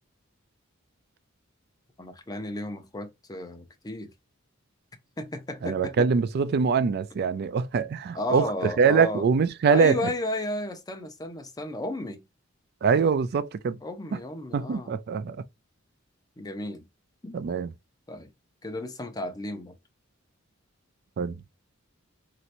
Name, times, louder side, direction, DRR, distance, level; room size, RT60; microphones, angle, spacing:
voice 1, 2.0-4.1 5.2-6.1 8.2-9.3 9.7-12.2 13.8-14.9 16.4-16.9 17.2-17.3 18.1-18.3 18.6-19.7, left 1 dB, 20° left, 0.6 m, -33 dB
voice 2, 5.6-10.1 12.8-13.8 14.1-14.2 14.5-15.4 17.3-17.7 21.2-21.4, right 5 dB, 50° right, 0.4 m, -24 dB
3.1 x 2.9 x 2.5 m
head